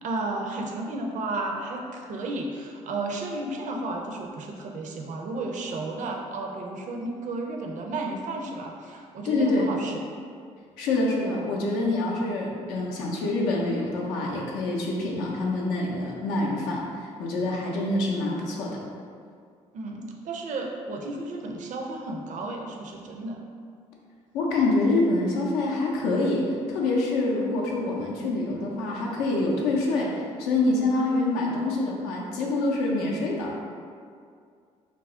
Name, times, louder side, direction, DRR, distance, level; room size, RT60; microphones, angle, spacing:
voice 1, 0.0-10.0 19.7-23.4, right 2 dB, 55° right, 1 dB, 0.4 m, -33 dB
voice 2, 9.2-9.7 10.8-18.8 24.3-33.5, left 2 dB, 85° left, -2 dB, 0.5 m, -26 dB
2.3 x 2.0 x 3.5 m, 2.2 s
hypercardioid pair, 50°, 15 cm